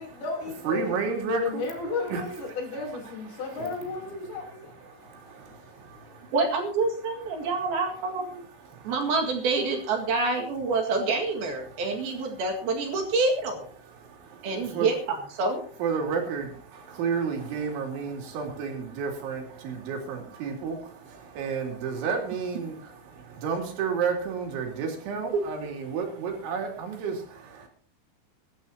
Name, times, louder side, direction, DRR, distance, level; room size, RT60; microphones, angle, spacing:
voice 1, 0.0-1.0 1.4-6.3, left 4 dB, 60° left, 4.9 m, -35 dB
voice 2, 0.6-1.6 2.1-2.2 3.6-3.7 4.8-6.3 7.3-7.7 8.6-8.9 10.1-10.3 11.6-12.4 12.9-13.0 13.8-14.9 15.8-27.7, right 5 dB, 90° right, 5.1 m, -32 dB
voice 3, 6.3-8.4 8.9-13.7 14.4-15.6 25.3-25.4, right 3 dB, 60° right, 3.5 m, -27 dB
22.5 x 11.5 x 2.8 m
omnidirectional pair, 5.3 m